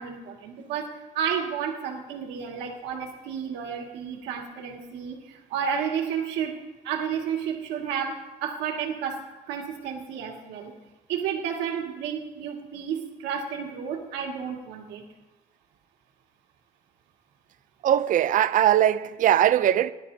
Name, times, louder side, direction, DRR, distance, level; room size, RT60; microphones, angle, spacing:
voice 1, 0.0-6.6 6.8-9.2 9.5-10.7 11.1-15.0, right 7 dB, 85° right, 2.1 m, -31 dB
voice 2, 17.8-19.9, right 11 dB, 50° right, 0.5 m, -20 dB
21.0 x 11.5 x 2.8 m
cardioid pair, 110°, 17 cm